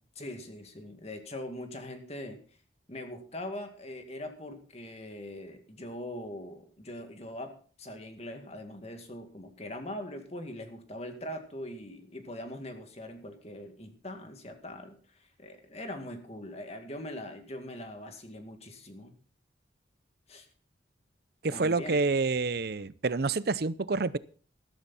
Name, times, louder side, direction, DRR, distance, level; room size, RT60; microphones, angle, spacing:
voice 1, 0.2-2.4 2.9-19.1 20.3-20.5 21.5-22.0, left 1 dB, 35° left, 5 dB, 2.1 m, -42 dB
voice 2, 21.4-24.2, right 3 dB, 55° right, 18 dB, 0.6 m, -28 dB
13.5 x 13.0 x 4.2 m, 0.40 s
head